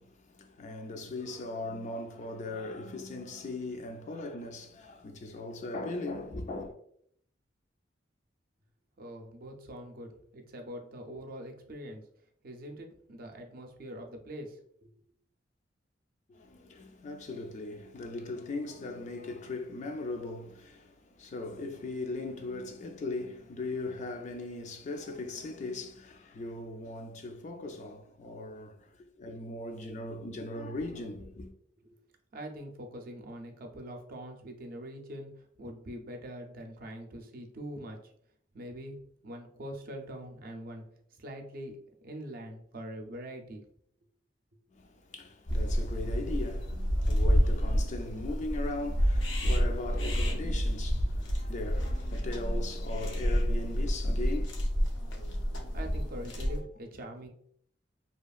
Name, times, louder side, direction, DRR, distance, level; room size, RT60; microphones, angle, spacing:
voice 1, 0.0-6.8 16.3-31.5 44.7-56.4, left 2 dB, 40° left, 0.4 m, -39 dB
voice 2, 9.0-12.0 12.4-14.9 31.8-32.0 32.3-38.1 38.5-40.8 41.1-41.8 42.0-43.6 55.7-57.3, equal, 55° right, 0.5 m, -43 dB
sound 1, 45.5-56.6, equal, 85° left, 0.6 m, -29 dB
2.8 x 2.4 x 2.3 m
head